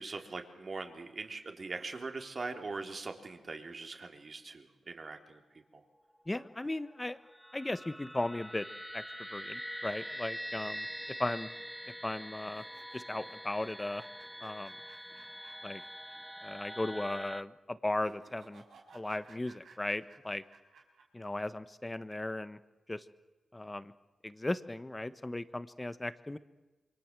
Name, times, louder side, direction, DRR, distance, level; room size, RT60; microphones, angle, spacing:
voice 1, 0.0-5.8 10.6-10.7, right 3 dB, 45° right, 5 dB, 3.6 m, -42 dB
voice 2, 6.3-7.2 7.5-8.7 8.9-9.0 9.3-10.9 11.2-11.5 12.0-12.6 12.9-14.0 14.4-14.7 15.6-15.8 16.4-18.6 18.9-20.4 21.1-22.6 22.9-23.0 23.5-23.9 24.2-26.4, left 2 dB, 20° left, 13 dB, 1.4 m, -36 dB
sound 1, 6.9-17.4, equal, ahead, 0.8 m, -44 dB
sound 2, 12.5-16.1 16.4-16.5 17.9-21.0, right 4 dB, 80° right, 5.1 m, -58 dB
28.0 x 24.0 x 7.7 m, 1.2 s
cardioid pair, 75°, 0 cm